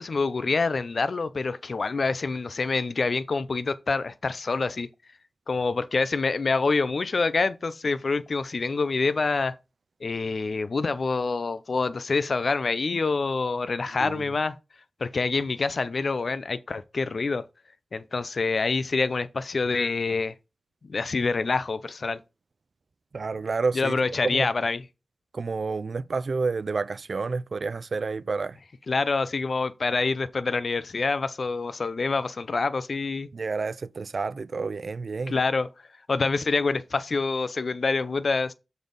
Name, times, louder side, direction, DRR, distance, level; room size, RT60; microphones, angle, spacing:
voice 1, 0.0-4.9 5.5-9.5 10.0-14.6 15.0-17.4 17.9-20.3 20.9-22.2 23.7-24.8 28.9-33.3 35.3-35.7 36.1-38.5, left 4 dB, 55° left, 0.5 m, -26 dB
voice 2, 23.1-23.9 24.2-24.5 25.3-28.6 33.3-35.3, right 4 dB, 60° right, 0.4 m, -29 dB
7.0 x 4.0 x 5.2 m
wide cardioid pair, 80°, 0 cm